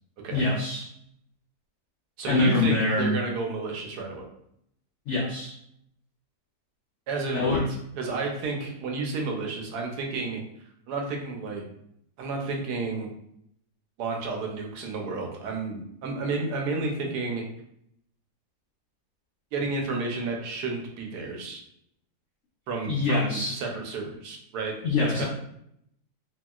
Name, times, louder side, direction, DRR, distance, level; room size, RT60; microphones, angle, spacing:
voice 1, 0.3-0.8 2.2-3.1 5.1-5.5 7.3-7.6 22.9-23.5 24.8-25.3, left 3 dB, 80° left, -2 dB, 0.6 m, -24 dB
voice 2, 2.2-4.3 7.1-7.6 8.0-10.4 10.9-11.6 12.2-13.1 14.0-17.4 19.5-21.6 22.7-24.8 25.2-25.3, right 3 dB, 80° right, 1 dB, 1.2 m, -31 dB
2.9 x 2.7 x 2.2 m, 0.74 s
omnidirectional pair, 1.7 m